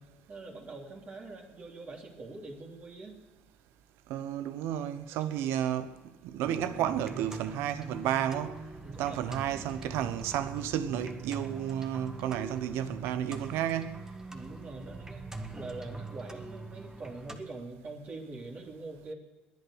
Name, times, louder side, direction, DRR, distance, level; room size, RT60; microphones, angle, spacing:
voice 1, 0.0-3.2 8.8-9.3 14.3-15.2 15.5-19.1, right 2 dB, 40° right, 3.1 m, -44 dB
voice 2, 4.1-5.9 6.2-8.7 9.0-14.0, right 10 dB, 75° right, 1.1 m, -32 dB
sound 1, 6.4-17.4, right 3 dB, 15° right, 1.6 m, -43 dB
21.5 x 8.6 x 6.5 m
supercardioid pair, 85°, 4 cm